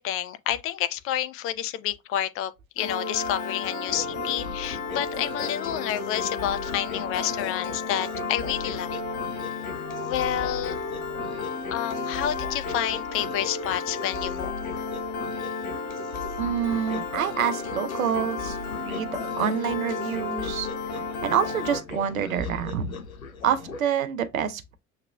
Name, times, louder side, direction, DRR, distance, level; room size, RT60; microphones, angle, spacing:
voice 1, 0.0-9.0 10.0-10.8 11.7-14.5, left 11 dB, 35° left, 0.4 m, -29 dB
Piano, 2.8-21.8, left 4 dB, 70° left, 0.9 m, -33 dB
sound 1, 3.9-23.8, left 4 dB, 85° left, 0.6 m, -39 dB
voice 2, 16.4-20.7 21.2-22.9 23.4-24.8, right 8 dB, 75° right, 0.6 m, -27 dB
6.5 x 2.9 x 2.2 m
figure-of-eight pair, 65°, 41 cm